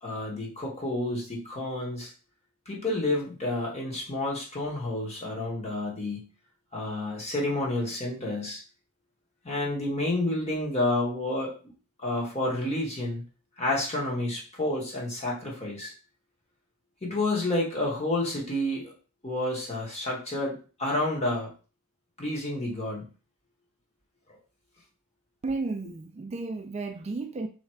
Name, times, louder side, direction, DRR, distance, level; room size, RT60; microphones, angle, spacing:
voice 1, 0.0-2.1 2.7-6.2 6.7-8.6 9.4-11.5 12.0-13.2 13.6-15.9 17.0-18.9 19.2-21.5 22.2-23.1, left 1 dB, 30° left, 1.5 m, -30 dB
voice 2, 25.4-27.5, right 3 dB, 30° right, 0.3 m, -33 dB
3.7 x 3.1 x 4.4 m
head